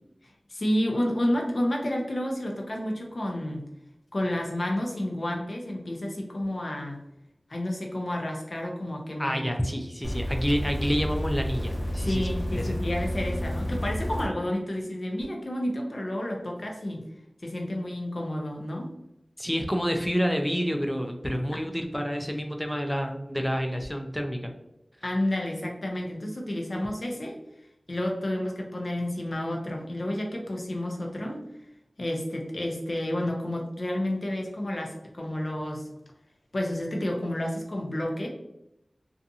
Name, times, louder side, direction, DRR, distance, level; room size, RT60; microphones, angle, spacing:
voice 1, 0.5-3.7 4.1-7.0 7.5-9.4 12.0-17.0 17.4-18.9 21.5-21.6 25.0-27.3 27.9-31.4 32.0-35.9 36.5-38.3, left 1 dB, 60° left, 0 dB, 0.6 m, -30 dB
voice 2, 9.2-12.8 19.4-24.5, equal, 10° left, 4 dB, 0.4 m, -28 dB
sound 1, 10.0-14.3 15.2-15.3, equal, 40° left, 1.2 m, -30 dB
2.5 x 2.4 x 2.6 m, 0.88 s
wide cardioid pair, 70°, 0 cm